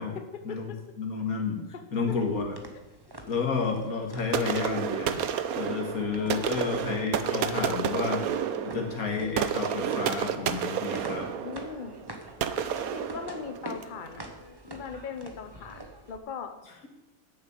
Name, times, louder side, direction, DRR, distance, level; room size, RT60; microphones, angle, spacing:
voice 1, 0.1-0.8 2.1-2.2 6.2-6.8 7.4-7.9 11.4-12.0 12.8-14.2 14.6-16.5, left 6 dB, 40° left, 7 dB, 0.9 m, -39 dB
voice 2, 1.0-1.6 1.9-2.5 3.3-5.2 5.6-8.3 8.6-11.3, left 5 dB, 75° left, 2 dB, 2.3 m, -30 dB
sound 1, 2.1-16.2, right 1 dB, 20° right, 0.9 m, -47 dB
sound 2, 4.3-14.0, right 8 dB, 80° right, 1.2 m, -31 dB
9.7 x 7.0 x 8.5 m, 1.0 s
omnidirectional pair, 1.5 m